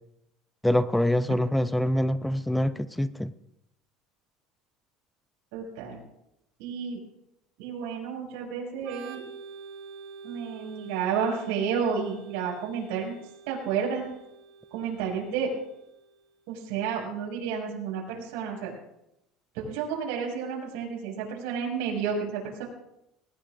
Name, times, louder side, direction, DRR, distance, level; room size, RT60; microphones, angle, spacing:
voice 1, 0.6-3.3, left 1 dB, 5° left, 13 dB, 0.5 m, -25 dB
voice 2, 5.5-6.0 6.6-7.0 7.6-9.2 10.2-13.1 13.5-14.1 14.7-15.5 16.5-18.7 19.5-22.6, right 6 dB, 85° right, -2 dB, 6.1 m, -31 dB
Organ, 8.8-16.3, right 5 dB, 60° right, 2.0 m, -47 dB
19.5 x 18.5 x 2.5 m, 0.84 s
cardioid pair, 155°, 0 cm